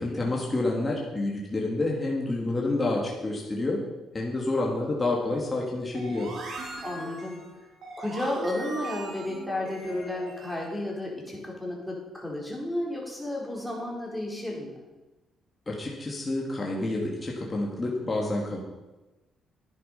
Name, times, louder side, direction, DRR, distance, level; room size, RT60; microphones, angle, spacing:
voice 1, 0.0-3.8 4.1-6.3 15.7-18.6, left 2 dB, 25° left, -2 dB, 2.8 m, -28 dB
sound 1, 5.9-10.8, right 2 dB, 65° right, 3.8 m, -39 dB
voice 2, 6.8-7.4 8.0-14.8, left 1 dB, 5° left, -3 dB, 4.7 m, -33 dB
11.0 x 10.0 x 5.7 m, 1.1 s
cardioid pair, 90°, 0 cm